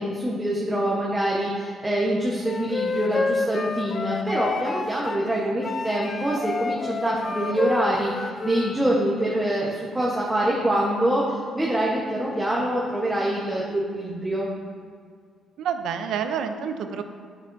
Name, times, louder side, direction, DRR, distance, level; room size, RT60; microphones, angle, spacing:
voice 1, 0.0-14.5, right 1 dB, 10° right, -4 dB, 1.0 m, -25 dB
Wind instrument woodwind instrument, 2.5-5.2 5.6-8.8, left 3 dB, 35° left, 0.4 m, -29 dB
voice 2, 15.6-17.0, right 7 dB, 80° right, 8 dB, 0.5 m, -28 dB
8.4 x 6.1 x 2.6 m, 2.1 s
cardioid pair, 90°, 0 cm